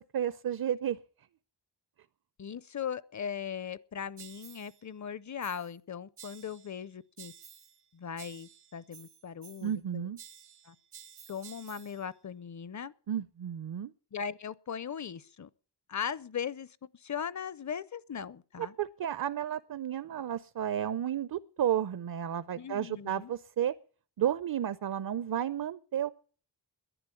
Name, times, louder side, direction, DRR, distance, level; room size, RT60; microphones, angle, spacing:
voice 1, 0.1-1.0 9.6-10.2 13.1-13.9 18.6-23.7 24.2-26.1, right 10 dB, 60° right, 0.6 m, -32 dB
voice 2, 2.4-7.3 7.9-10.1 10.6-10.8 11.3-12.9 14.1-15.5 15.9-16.7 16.9-18.7 22.6-23.3, left 7 dB, 45° left, 0.6 m, -39 dB
sound 1, 4.2-4.8 5.4-5.8 6.2-6.8 7.2-7.8 8.2-9.8 10.2-12.1, right 8 dB, 80° right, 1.0 m, -52 dB
11.0 x 9.5 x 9.9 m
wide cardioid pair, 100°, 40 cm